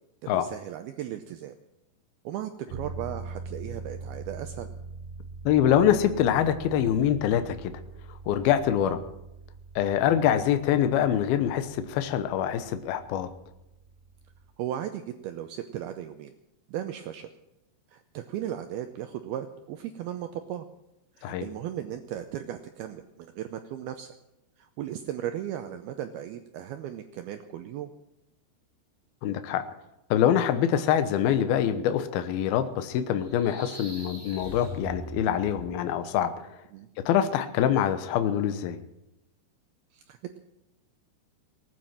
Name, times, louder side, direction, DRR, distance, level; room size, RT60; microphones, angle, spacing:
voice 1, 0.3-1.5 2.2-4.7 8.8-9.0 14.6-16.3 16.7-17.3 17.9-20.7 21.1-24.1 24.6-27.9 36.7-36.9 39.9-40.4, right 11 dB, 90° right, 8 dB, 2.2 m, -36 dB
sound 1, 2.7-14.6, right 4 dB, 70° right, 2.1 m, -43 dB
voice 2, 5.5-7.7 8.3-9.0 9.8-13.3 21.2-21.5 29.2-29.6 30.1-36.5 37.1-38.8, left 10 dB, 70° left, 10 dB, 2.5 m, -25 dB
sound 2, 33.2-36.0, equal, 5° right, 3.8 m, -41 dB
19.0 x 9.6 x 7.5 m, 0.90 s
omnidirectional pair, 5.3 m